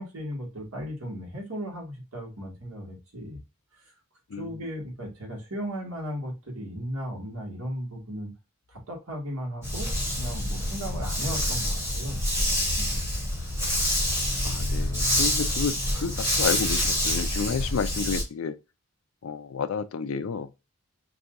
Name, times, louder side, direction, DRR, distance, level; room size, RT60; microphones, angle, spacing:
voice 1, 0.0-3.4 3.7-3.9 4.4-8.3 8.7-13.2, equal, 75° right, 1.8 m, -36 dB
voice 2, 4.3-4.7 14.4-18.6 19.2-20.5, left 5 dB, 70° left, 0.4 m, -31 dB
Dog, 9.6-18.2, left 1 dB, 10° right, 1.2 m, -27 dB
5.7 x 2.7 x 2.5 m
head